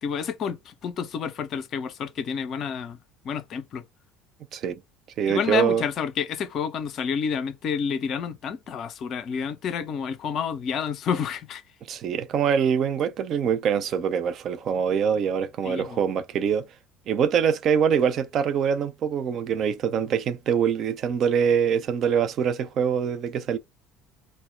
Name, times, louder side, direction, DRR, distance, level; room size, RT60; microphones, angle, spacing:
voice 1, 0.0-3.0 3.2-3.8 5.3-11.6 15.6-16.0, left 7 dB, 45° left, 0.5 m, -29 dB
voice 2, 5.2-5.8 11.9-16.7 17.1-23.6, right 7 dB, 45° right, 0.4 m, -24 dB
2.1 x 2.0 x 3.5 m
figure-of-eight pair, 60°, 0 cm